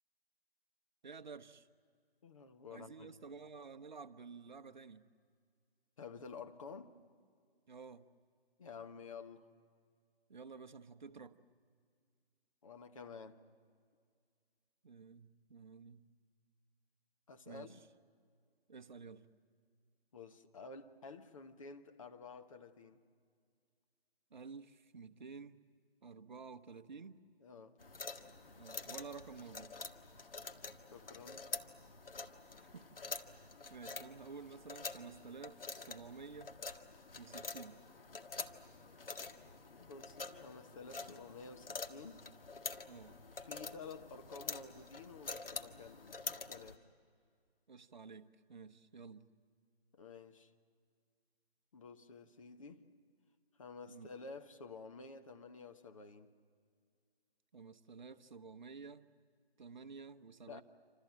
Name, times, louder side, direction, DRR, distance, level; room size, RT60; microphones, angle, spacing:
voice 1, 1.0-1.7 2.7-5.1 7.7-8.1 10.3-11.4 14.8-16.1 17.5-17.9 18.7-19.3 24.3-25.6 26.0-27.2 28.6-29.8 32.4-33.0 33.3-36.5 37.2-37.8 42.9-43.2 47.7-49.3 53.9-54.1 57.5-59.1 59.6-60.6, right 5 dB, 50° right, 1.0 m, -52 dB
voice 2, 2.2-3.1 6.0-6.9 8.6-9.5 12.6-13.4 17.3-17.8 20.1-23.0 27.4-27.8 30.9-31.5 39.8-42.8 43.4-46.8 49.9-50.5 51.7-52.8 53.6-56.3 60.5-60.6, left 4 dB, 35° left, 1.2 m, -51 dB
sound 1, 27.8-46.8, left 4 dB, 65° left, 1.7 m, -47 dB
27.5 x 27.0 x 7.7 m
figure-of-eight pair, 155°, 31 cm